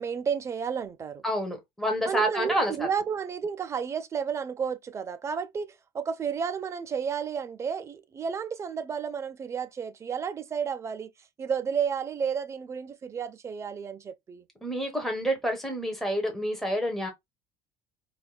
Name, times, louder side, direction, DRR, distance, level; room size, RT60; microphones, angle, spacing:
voice 1, 0.0-1.2 2.1-11.1 11.4-14.5, right 7 dB, 25° right, 0.4 m, -32 dB
voice 2, 1.2-2.7 14.6-17.1, equal, 5° left, 1.0 m, -28 dB
4.5 x 2.2 x 2.2 m
cardioid pair, 140°, 12 cm